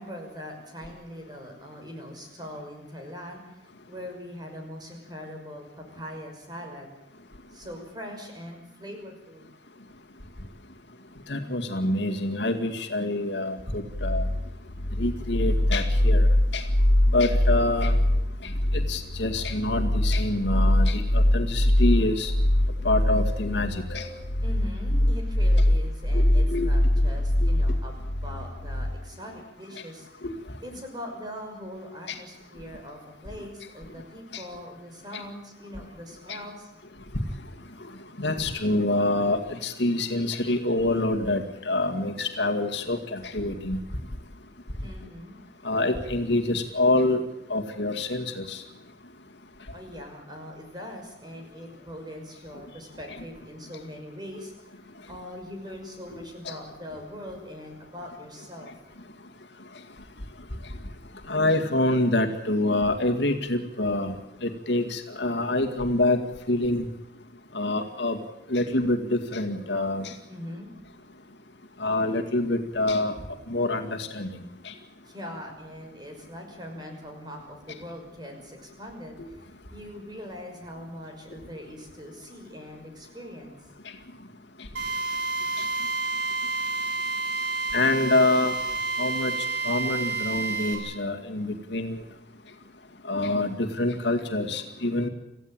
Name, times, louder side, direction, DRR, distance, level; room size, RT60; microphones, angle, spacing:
voice 1, 0.0-3.6 3.9-6.9 7.5-9.5 24.4-30.3 30.6-36.7 44.8-45.4 49.7-54.7 55.1-58.7 70.3-70.7 75.0-79.2 79.7-83.6, equal, 20° right, 3 dB, 5.8 m, -41 dB
voice 2, 11.3-14.2 15.0-16.3 16.5-16.6 17.1-18.0 18.7-22.3 22.8-24.2 26.1-26.2 26.5-26.7 34.3-34.4 36.3-36.4 38.2-43.8 45.6-47.2 47.5-48.6 56.5-56.6 61.3-64.1 64.4-66.2 66.5-66.9 67.5-68.2 68.5-70.1 71.8-73.1 73.5-74.3 74.6-74.7 87.7-88.6 89.0-89.3 89.6-92.0 93.1-95.1, left 2 dB, 70° left, 4 dB, 2.2 m, -26 dB
sound 1, 13.9-28.9, left 1 dB, 85° left, 1.9 m, -22 dB
Drill, 84.8-90.8, right 3 dB, 75° right, 6.8 m, -29 dB
27.5 x 15.5 x 9.0 m, 0.92 s
head